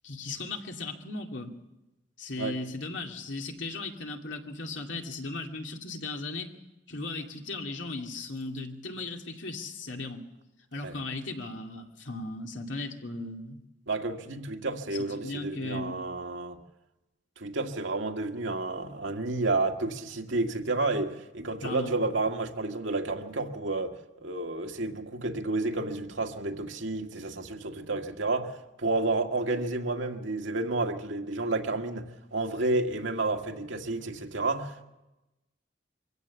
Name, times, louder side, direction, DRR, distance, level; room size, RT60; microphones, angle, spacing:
voice 1, 0.0-1.6 2.2-6.5 6.9-10.3 10.7-13.6 15.0-16.0 21.6-21.9, left 2 dB, 80° left, 3 dB, 2.4 m, -37 dB
voice 2, 13.9-16.6 17.4-28.5 28.8-34.8, right 2 dB, 90° right, 3 dB, 1.9 m, -31 dB
24.0 x 16.0 x 7.1 m, 1.0 s
head